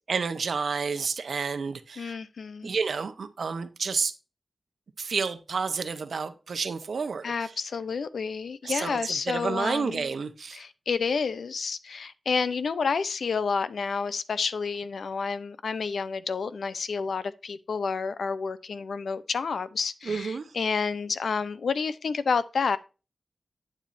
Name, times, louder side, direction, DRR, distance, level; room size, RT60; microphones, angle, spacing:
voice 1, 0.1-2.2 2.6-4.1 5.0-7.5 8.6-10.6 20.0-20.5, right 5 dB, 80° right, 0.9 m, -30 dB
voice 2, 2.0-2.7 7.2-10.1 10.5-22.8, left 5 dB, 90° left, 0.6 m, -30 dB
9.0 x 7.3 x 2.6 m
wide cardioid pair, 75°, 0 cm